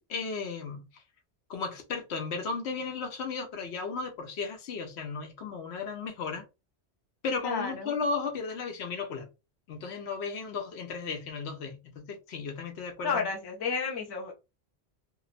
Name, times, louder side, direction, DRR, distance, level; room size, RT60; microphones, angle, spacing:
voice 1, 0.1-0.9 1.5-6.4 7.2-9.3 9.7-13.2, left 4 dB, 75° left, 0.9 m, -35 dB
voice 2, 7.4-7.9 13.0-14.3, left 5 dB, 30° left, 0.4 m, -31 dB
2.7 x 2.0 x 2.5 m
omnidirectional pair, 1.1 m